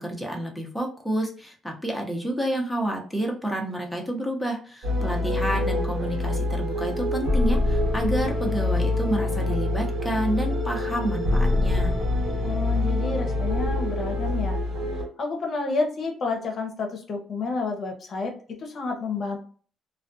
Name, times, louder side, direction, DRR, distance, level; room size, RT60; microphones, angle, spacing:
voice 1, 0.0-12.0, right 1 dB, ahead, -1 dB, 0.7 m, -29 dB
sound 1, 4.8-15.0, left 2 dB, 70° right, 1.0 m, -25 dB
voice 2, 12.4-14.6 15.0-18.3 18.6-19.4, left 3 dB, 55° left, 2 dB, 0.7 m, -30 dB
2.3 x 2.2 x 2.5 m, 0.42 s
cardioid pair, 95°, 0 cm